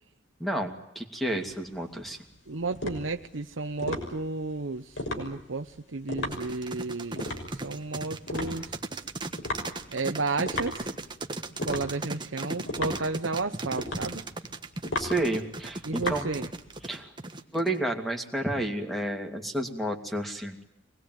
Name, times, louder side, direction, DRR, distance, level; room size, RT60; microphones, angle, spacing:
voice 1, 0.4-2.2 15.0-16.3 16.8-17.1 17.5-20.6, right 1 dB, ahead, 4 dB, 2.6 m, -31 dB
sound 1, 1.3-16.9, left 1 dB, 70° left, 6.1 m, -37 dB
voice 2, 2.5-7.3 7.6-8.8 9.9-10.9 11.6-14.2 15.8-16.5, right 3 dB, 80° right, 6 dB, 1.0 m, -32 dB
sound 2, 6.3-17.8, right 2 dB, 25° right, 1.5 m, -36 dB
25.0 x 20.0 x 9.3 m, 0.84 s
head